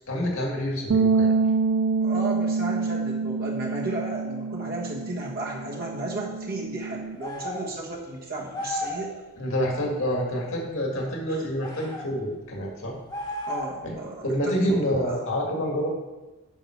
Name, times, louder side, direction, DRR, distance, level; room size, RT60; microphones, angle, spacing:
voice 1, 0.1-1.4 9.4-12.9 13.8-13.9 14.2-15.9, equal, 60° left, 0 dB, 2.1 m, -27 dB
sound 1, 0.9-7.2, right 4 dB, 60° right, 0.4 m, -26 dB
voice 2, 2.0-9.1 11.3-11.4 13.5-15.2, right 2 dB, 45° right, -2 dB, 1.4 m, -34 dB
sound 2, 7.2-7.7 8.5-9.1 11.6-12.1 13.1-13.9, left 1 dB, 20° left, 1.4 m, -33 dB
9.1 x 5.8 x 5.9 m, 1.2 s
head